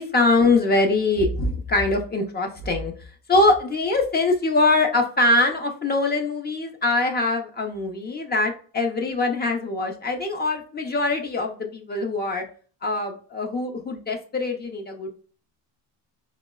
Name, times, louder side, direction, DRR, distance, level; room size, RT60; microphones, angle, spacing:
voice 1, 0.0-12.4 12.8-15.1, left 2 dB, 25° left, 3 dB, 0.4 m, -23 dB
3.8 x 2.0 x 2.2 m, 0.41 s
supercardioid pair, 85°, 40 cm